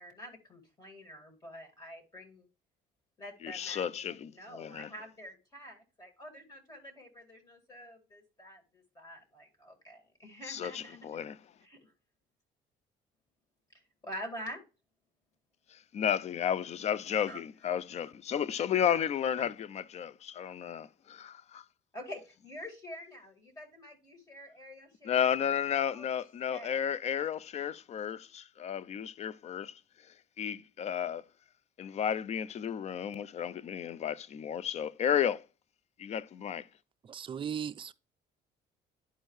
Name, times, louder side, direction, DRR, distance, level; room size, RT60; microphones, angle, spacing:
voice 1, 0.0-2.5 3.2-11.2 11.6-11.9 14.0-14.6 17.3-17.8 18.9-19.0 19.4-19.5 21.9-25.3 25.7-26.1 26.5-26.9, equal, 20° left, 2.1 m, -47 dB
voice 2, 3.4-4.9 10.4-11.4 15.7-21.6 25.0-29.8 30.4-31.2 31.8-35.5 36.0-36.7, left 9 dB, 40° left, 0.4 m, -33 dB
voice 3, 37.0-37.9, right 8 dB, 30° right, 0.4 m, -37 dB
11.0 x 4.5 x 3.1 m
cardioid pair, 110°, 17 cm